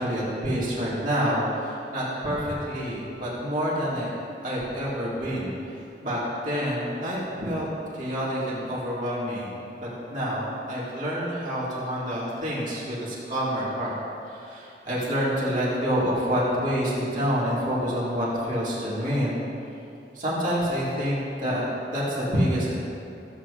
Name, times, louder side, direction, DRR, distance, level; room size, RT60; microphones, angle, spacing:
voice 1, 0.0-4.1 4.4-7.7 7.9-13.9 14.3-19.4 20.1-22.8, equal, 45° right, -7 dB, 2.0 m, -27 dB
14.5 x 8.2 x 2.5 m, 2.7 s
head